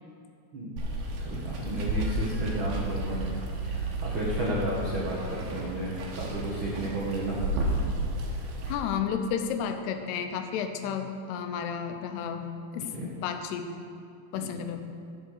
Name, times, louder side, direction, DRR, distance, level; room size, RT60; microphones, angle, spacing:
Water, 0.8-8.7, right 1 dB, 70° right, 2.8 m, -32 dB
voice 1, 1.2-3.3 3.6-7.4 12.9-13.1 14.4-14.5, right 1 dB, 85° right, -6 dB, 1.1 m, -32 dB
voice 2, 8.7-13.7 14.3-14.8, left 7 dB, 85° left, 7 dB, 2.7 m, -32 dB
11.0 x 6.8 x 6.5 m, 2.3 s
omnidirectional pair, 4.7 m